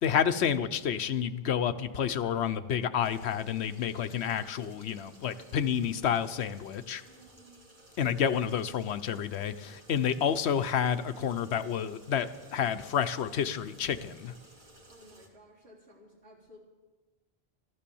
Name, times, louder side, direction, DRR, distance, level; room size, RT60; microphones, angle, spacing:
voice 1, 0.0-7.0 8.0-14.3, left 8 dB, 90° left, 1.0 m, -29 dB
sound 1, 3.0-15.3, right 1 dB, 50° right, 2.2 m, -56 dB
voice 2, 7.0-7.6 14.9-16.6, equal, 85° right, 3.9 m, -56 dB
14.5 x 13.0 x 7.0 m
omnidirectional pair, 1.1 m